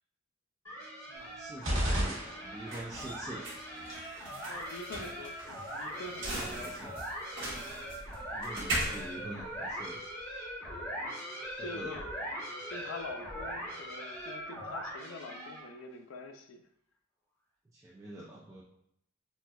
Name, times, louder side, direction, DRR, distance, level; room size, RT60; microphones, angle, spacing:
sound 1, 0.6-15.8, equal, 15° left, 0.9 m, -41 dB
voice 1, 1.1-3.5 6.3-7.0 8.3-10.0 11.5-11.9 17.7-18.6, right 1 dB, 15° right, -6 dB, 0.3 m, -45 dB
sound 2, 1.2-10.2, right 1 dB, 65° right, 1.0 m, -40 dB
sound 3, 1.6-2.9, equal, 80° right, 1.2 m, -32 dB
voice 2, 4.4-6.7 7.3-7.7 10.7-12.2 12.7-16.6, left 3 dB, 75° left, 6 dB, 0.4 m, -46 dB
4.1 x 2.1 x 2.3 m, 0.74 s
head